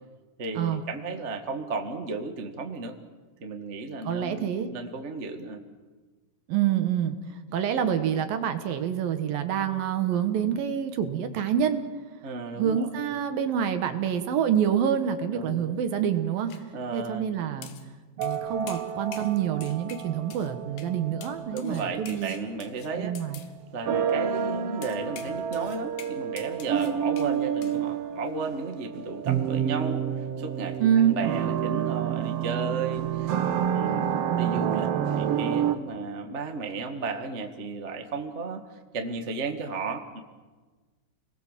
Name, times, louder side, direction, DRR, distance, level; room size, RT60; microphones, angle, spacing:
voice 1, 0.4-3.0 3.4-5.6 12.2-12.9 15.3-15.8 16.7-17.3 21.5-23.1 23.7-30.8 31.0-33.4 33.7-38.6 38.9-40.2, right 4 dB, 35° right, 5 dB, 1.2 m, -34 dB
voice 2, 4.0-4.7 6.5-7.2 7.5-11.8 12.6-16.5 16.9-17.7 18.2-22.3 22.9-23.4 30.8-31.2, right 9 dB, 70° right, 8 dB, 3.0 m, -26 dB
sound 1, 16.5-16.6 17.6-17.9 18.2-18.4 18.7-19.4 19.6-20.5 20.8-20.9 21.2-23.5 24.8-27.3 27.6-27.8, left 9 dB, 90° left, 3.5 m, -47 dB
sound 2, 18.2-21.9 23.8-35.8, right 9 dB, 85° right, 1.3 m, -29 dB
30.0 x 20.5 x 7.5 m, 1.3 s
omnidirectional pair, 4.5 m